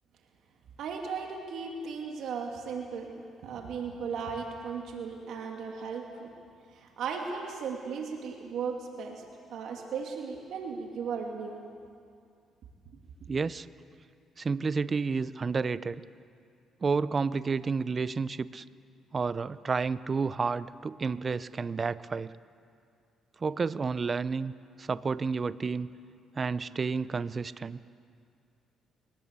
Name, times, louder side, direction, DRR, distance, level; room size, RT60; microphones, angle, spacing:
voice 1, 0.8-3.1 3.4-6.3 6.7-9.2 9.5-11.6, right 5 dB, 70° right, 2 dB, 2.7 m, -36 dB
voice 2, 13.3-13.7 14.4-16.0 16.8-18.6 19.1-22.3 23.4-24.5 24.8-25.9 26.4-27.8, right 4 dB, 35° right, 17 dB, 0.7 m, -30 dB
22.5 x 19.0 x 8.3 m, 2.3 s
supercardioid pair, 70°, 0 cm